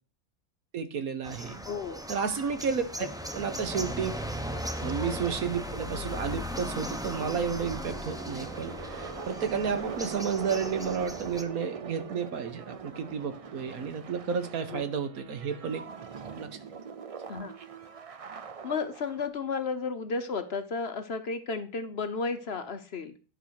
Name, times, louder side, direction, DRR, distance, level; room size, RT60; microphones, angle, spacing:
voice 1, 0.7-1.6 2.1-2.9 3.3-4.1 4.8-15.8 16.3-16.5, right 6 dB, 85° right, 9 dB, 1.6 m, -32 dB
sound 1, 1.2-11.4, equal, 5° right, 0.7 m, -37 dB
voice 2, 1.6-2.1 3.0-3.1 4.5-4.6 14.7-14.8 17.3-17.5 18.6-23.2, left 4 dB, 50° left, 10 dB, 1.0 m, -33 dB
sound 2, 4.9-5.3 5.8-5.9 6.0-19.3, right 6 dB, 65° right, 0.3 m, -42 dB
11.5 x 4.8 x 6.5 m, 0.37 s
omnidirectional pair, 1.5 m